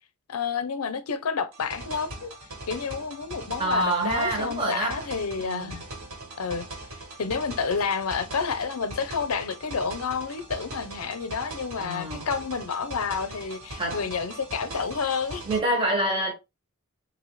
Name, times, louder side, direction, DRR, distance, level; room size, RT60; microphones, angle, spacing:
voice 1, 0.3-2.3 2.7-5.8 6.4-6.6 7.2-15.4, left 5 dB, 85° left, 0.6 m, -29 dB
sound 1, 1.5-15.6, right 1 dB, 70° right, 1.6 m, -40 dB
voice 2, 3.6-5.0 5.4-5.8 11.8-12.3 13.8-14.0 15.4-16.3, right 1 dB, 25° right, 1.2 m, -26 dB
4.1 x 2.7 x 3.1 m
head